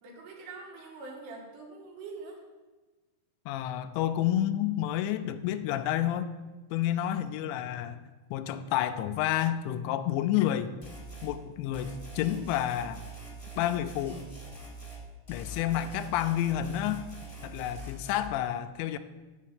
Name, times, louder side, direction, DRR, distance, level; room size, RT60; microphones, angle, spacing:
voice 1, 0.0-2.4, right 3 dB, 70° right, 0 dB, 3.7 m, -44 dB
voice 2, 3.5-6.3 6.7-8.0 8.3-10.7 11.2-13.0 13.6-14.2 15.3-17.1 17.4-19.0, left 11 dB, 85° left, 10 dB, 2.8 m, -29 dB
sound 1, 10.8-11.3 11.7-15.0 15.3-18.2, right 2 dB, 20° left, 0.8 m, -44 dB
7.5 x 7.4 x 7.2 m, 1.2 s
omnidirectional pair, 5.2 m